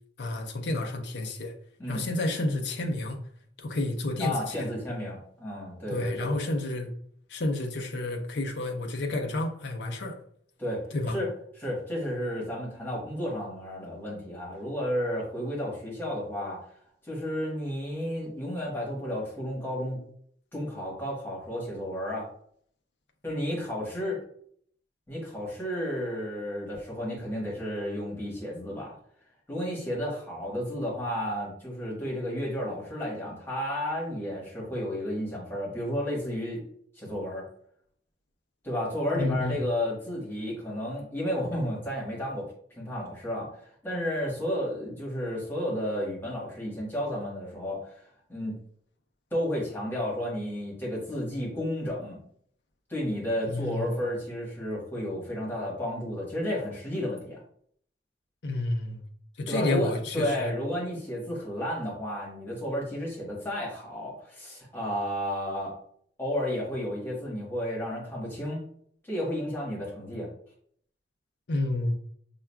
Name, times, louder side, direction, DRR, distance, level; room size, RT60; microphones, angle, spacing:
voice 1, 0.2-1.5 1.9-3.2 3.6-4.7 5.9-6.9 7.3-10.2 10.9-11.2 39.2-39.6 53.5-53.9 58.4-59.0 59.4-60.5 71.5-72.0, left 2 dB, 70° left, 0.5 m, -30 dB
voice 2, 4.2-6.3 10.6-11.3 11.6-16.6 17.0-20.0 20.5-22.3 23.2-24.2 25.1-29.0 29.5-36.6 36.9-37.5 38.6-43.5 43.8-47.9 48.3-48.6 49.3-52.2 52.9-57.4 59.5-65.7 66.2-68.6 69.0-70.3, equal, 10° left, 1.2 m, -32 dB
5.7 x 2.3 x 2.2 m
head